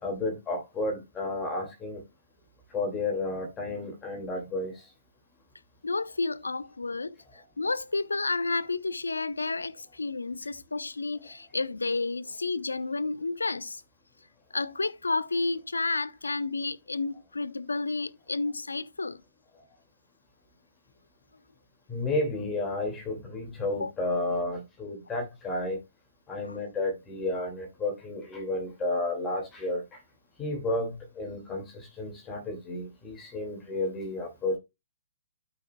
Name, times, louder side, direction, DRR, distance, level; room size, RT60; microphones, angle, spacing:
voice 1, 0.0-2.0 2.7-4.9 11.2-11.3 21.9-25.8 26.3-30.0 30.4-34.6, left 2 dB, 20° left, 2.2 m, -32 dB
voice 2, 5.8-13.8 14.5-19.2 23.7-23.9 26.4-26.6, left 3 dB, 90° left, 0.6 m, -31 dB
12.5 x 5.4 x 2.2 m
hypercardioid pair, 130°, 0 cm